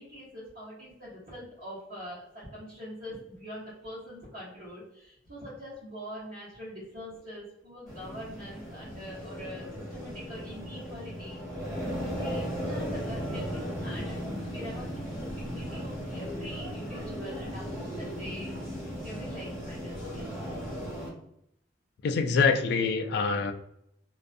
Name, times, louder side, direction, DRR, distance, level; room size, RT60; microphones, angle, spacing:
voice 1, 0.0-14.2 14.5-20.3, equal, 60° right, -11 dB, 1.0 m, -44 dB
sound 1, 7.9-21.1, equal, 15° right, 1.3 m, -36 dB
voice 2, 22.0-23.5, left 4 dB, 60° left, 6 dB, 0.3 m, -25 dB
2.5 x 2.2 x 2.5 m, 0.77 s
head